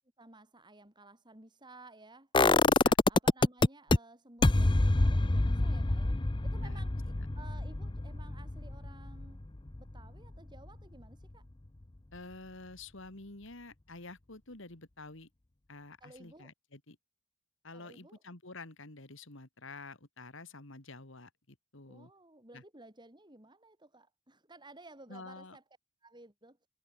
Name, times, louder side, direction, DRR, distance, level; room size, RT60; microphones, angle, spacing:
voice 1, 0.2-2.7 3.1-9.4 9.8-11.5 16.0-16.5 17.7-18.2 21.9-25.6 26.0-26.6, right 2 dB, 20° right, 3.5 m, -55 dB
sound 1, 2.3-4.0 4.4-10.3 10.6-10.7, left 2 dB, 20° left, 0.6 m, -27 dB
voice 2, 12.1-15.3 15.7-17.0 17.6-22.1 22.5-22.6 25.1-25.6, left 3 dB, 55° left, 2.4 m, -49 dB
head